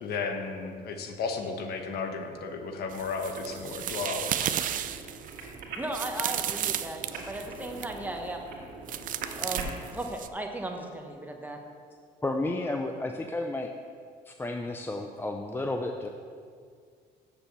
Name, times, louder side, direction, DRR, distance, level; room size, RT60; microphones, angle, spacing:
voice 1, 0.0-4.6, left 4 dB, 70° left, 5 dB, 1.2 m, -34 dB
sound 1, 2.9-8.0 8.9-10.3, right 10 dB, 55° right, 0.5 m, -34 dB
sound 2, 3.8-9.7, right 3 dB, 75° right, 2.0 m, -43 dB
voice 2, 5.8-8.6 9.3-11.6, right 1 dB, 10° right, 2 dB, 1.1 m, -36 dB
voice 3, 12.2-13.7 14.3-16.1, left 2 dB, 15° left, 4 dB, 0.5 m, -32 dB
7.7 x 7.0 x 6.8 m, 2.2 s
cardioid pair, 110°, 17 cm